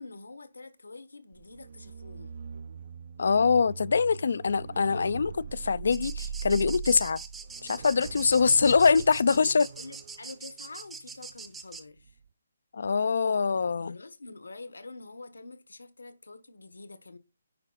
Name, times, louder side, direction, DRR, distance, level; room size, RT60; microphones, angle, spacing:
voice 1, 0.0-2.4 9.2-12.2 13.8-17.2, left 3 dB, 85° left, 1.3 m, -46 dB
sound 1, 1.3-11.6 12.0-12.3, right 5 dB, 55° right, 0.6 m, -41 dB
voice 2, 3.2-7.2 7.6-9.7 12.7-14.0, left 5 dB, 65° left, 0.4 m, -24 dB
sound 2, 5.9-11.8, right 5 dB, 10° right, 0.7 m, -44 dB
10.0 x 4.8 x 4.0 m
figure-of-eight pair, 150°, 0 cm